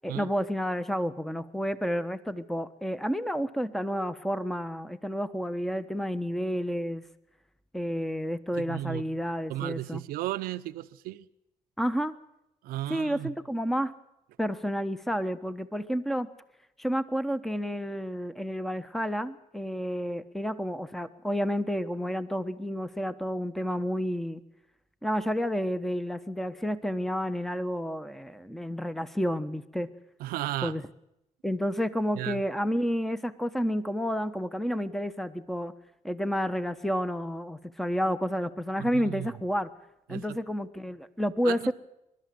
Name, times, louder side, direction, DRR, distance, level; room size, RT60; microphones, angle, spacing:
voice 1, 0.0-7.0 7.7-10.0 11.8-12.1 12.9-13.9 14.4-16.3 16.8-24.4 25.0-29.9 30.6-30.8 31.4-35.7 36.0-39.7 40.1-41.7, equal, ahead, 1.1 m, -30 dB
voice 2, 8.5-9.0 9.5-11.3 12.6-13.3 30.2-30.7 32.1-32.4 38.8-39.3 40.1-40.4 41.4-41.7, right 15 dB, 90° right, 0.8 m, -34 dB
29.5 x 12.5 x 7.8 m
cardioid pair, 70°, 15 cm